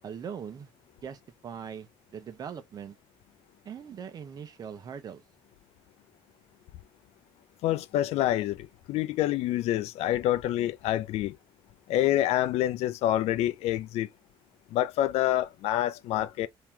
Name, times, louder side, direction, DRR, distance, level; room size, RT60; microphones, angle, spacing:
voice 1, 0.0-0.7 1.0-3.0 3.6-5.2, right 7 dB, 35° right, 0.9 m, -41 dB
voice 2, 7.6-11.4 11.9-14.1 14.7-16.5, left 13 dB, 75° left, 0.5 m, -27 dB
3.7 x 3.0 x 4.3 m
cardioid pair, 165°, 11 cm